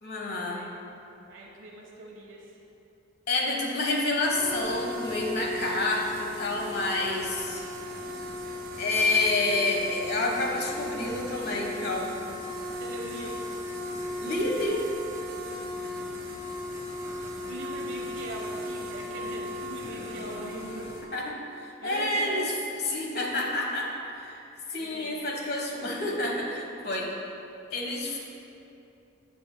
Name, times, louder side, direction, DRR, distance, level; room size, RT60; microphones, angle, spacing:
voice 1, 0.0-0.6 3.3-7.6 8.8-12.1 14.2-14.8 21.1-22.5 22.8-24.4 24.7-27.1 27.7-28.2, left 2 dB, 50° left, -1 dB, 1.3 m, -28 dB
voice 2, 1.3-2.6 12.8-13.6 17.4-20.9 21.8-22.5 24.7-25.3, right 2 dB, 75° right, -2 dB, 1.2 m, -41 dB
sound 1, 4.2-21.0, left 1 dB, 45° right, 1.6 m, -36 dB
16.0 x 6.9 x 2.2 m, 2.8 s
head